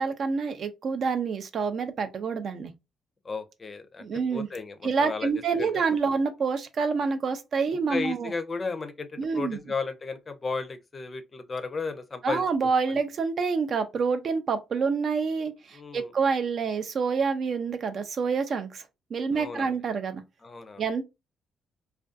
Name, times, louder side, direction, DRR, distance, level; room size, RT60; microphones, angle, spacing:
voice 1, 0.0-2.7 4.0-4.5 4.8-8.3 9.2-9.6 12.2-18.8 19.1-20.2 20.8-21.0, right 5 dB, 55° right, 0.4 m, -27 dB
voice 2, 3.2-4.1 4.3-5.3 5.6-5.8 7.9-12.4 15.7-16.1 19.3-19.7 20.4-21.0, left 4 dB, 30° left, 0.4 m, -34 dB
2.4 x 2.2 x 2.4 m
cardioid pair, 90°, 0 cm